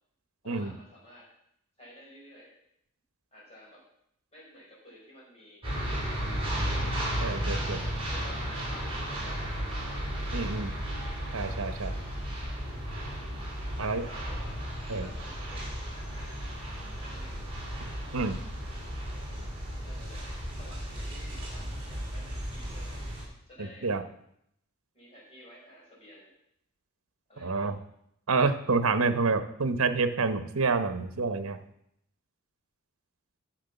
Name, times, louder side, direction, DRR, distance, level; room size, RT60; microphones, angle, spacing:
voice 1, 0.4-1.3 1.8-2.5 3.3-3.8 4.3-6.2 6.6-6.9 8.1-9.7 10.5-10.7 12.7-12.9 13.8-14.6 15.0-16.5 17.0-17.5 19.8-20.2 20.6-23.0 23.5-23.9 24.9-26.3 27.3-27.6, equal, 30° left, -5 dB, 5.0 m, -52 dB
sound 1, 5.6-23.2, equal, 25° right, 3.9 m, -34 dB
voice 2, 7.2-7.8 10.3-10.7 11.3-11.9 13.8-14.0 14.9-15.1 18.1-18.4 23.6-24.0 27.4-27.8 28.3-31.6, right 4 dB, 85° right, 11 dB, 0.9 m, -28 dB
10.5 x 6.5 x 6.7 m, 0.75 s
head